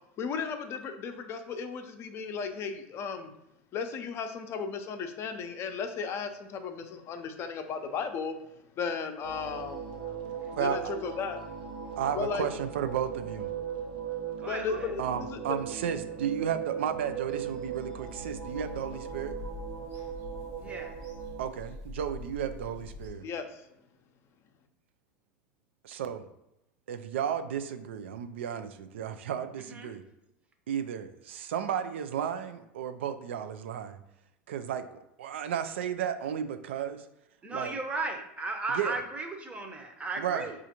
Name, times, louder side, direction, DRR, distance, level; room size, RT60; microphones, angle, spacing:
voice 1, 0.2-3.3 3.7-8.3 8.8-10.0 10.6-11.4 12.2-12.5 14.5-15.6 23.2-23.6, left 5 dB, 45° left, 7 dB, 0.5 m, -35 dB
sound 1, 9.2-21.4, right 8 dB, 70° right, 0.9 m, -38 dB
voice 2, 10.5-10.9 12.0-13.5 15.0-19.3 21.4-23.3 25.8-26.2 26.9-30.0 30.7-34.0 34.5-37.0 37.5-37.7 38.7-39.0 40.2-40.5, right 9 dB, 85° right, 9 dB, 0.4 m, -33 dB
voice 3, 14.4-14.9 20.6-20.9 29.7-29.9 37.4-40.5, right 3 dB, 20° right, 4 dB, 0.8 m, -35 dB
Bird vocalization bird call bird song / Telephone, 18.1-23.1, left 4 dB, 50° right, 1.5 m, -45 dB
4.9 x 2.5 x 2.8 m, 0.86 s
hypercardioid pair, 100°, 6 cm